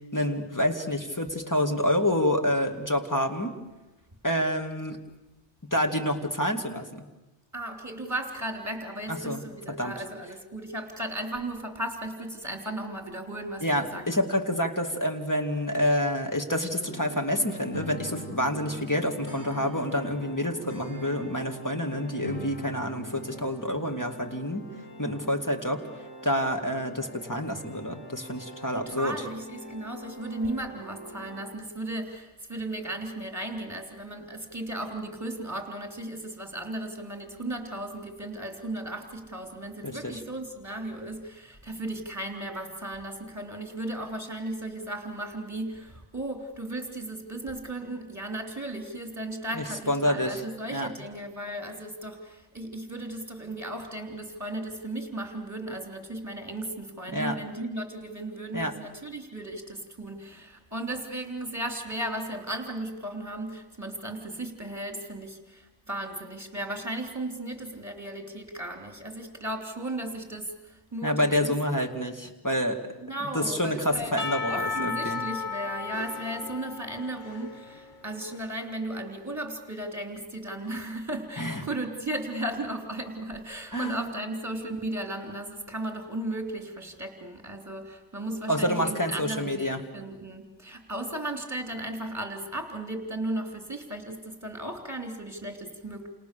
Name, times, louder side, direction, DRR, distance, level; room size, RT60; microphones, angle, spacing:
voice 1, 0.1-3.5 4.2-5.0 5.7-7.0 9.2-9.4 9.8-9.9 13.6-24.6 25.0-25.8 26.2-29.1 39.8-40.2 49.5-50.4 50.7-50.9 57.1-57.4 58.5-58.7 71.0-72.8 73.3-75.2 81.4-81.6 83.7-84.1 88.5-89.8, left 1 dB, 15° left, 4 dB, 2.2 m, -28 dB
voice 2, 7.5-14.2 28.7-71.5 73.0-74.2 74.5-96.1, right 1 dB, 15° right, 3 dB, 3.3 m, -35 dB
sound 1, 16.8-31.4, right 1 dB, 90° left, 7.8 m, -42 dB
Percussion / Church bell, 74.2-78.3, left 5 dB, 45° left, 1.3 m, -34 dB
29.0 x 28.5 x 6.9 m, 1.0 s
omnidirectional pair, 1.2 m